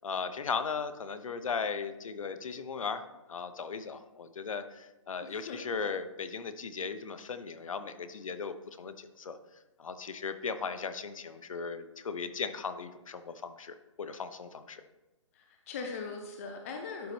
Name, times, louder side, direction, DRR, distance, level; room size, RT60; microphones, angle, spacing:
voice 1, 0.0-3.0 3.3-9.4 9.8-14.8, left 5 dB, 85° left, 10 dB, 0.7 m, -37 dB
voice 2, 5.2-5.6 15.3-17.1, left 4 dB, 25° left, 3 dB, 0.5 m, -40 dB
11.5 x 4.0 x 3.2 m, 1.0 s
hypercardioid pair, 160°, 17 cm